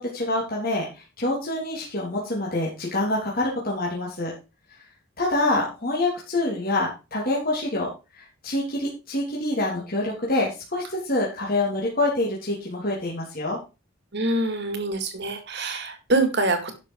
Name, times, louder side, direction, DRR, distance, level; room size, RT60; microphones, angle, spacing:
voice 1, 0.0-4.3 5.2-7.9 8.1-13.6, left 2 dB, 45° left, -4 dB, 3.2 m, -26 dB
voice 2, 14.1-16.7, right 2 dB, 55° right, 7 dB, 2.6 m, -25 dB
11.5 x 7.0 x 4.7 m, 0.29 s
head